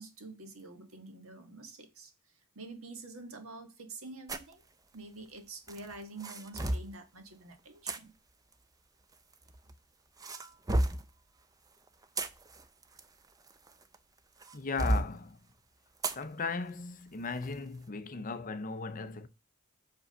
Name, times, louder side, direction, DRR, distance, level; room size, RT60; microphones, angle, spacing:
voice 1, 0.0-2.1 2.5-4.6 4.9-8.1, right 3 dB, 70° right, 1.5 m, -47 dB
sound 1, 4.3-4.5 5.7-6.9 7.9-8.0 9.1-9.7 10.2-11.1 11.9-14.0 14.4-15.1 16.0-16.2 16.7-16.8 17.4-17.6, right 1 dB, 15° right, 0.5 m, -32 dB
voice 2, 14.5-15.4 16.1-19.3, left 4 dB, 40° left, 0.6 m, -37 dB
6.0 x 5.3 x 5.5 m
head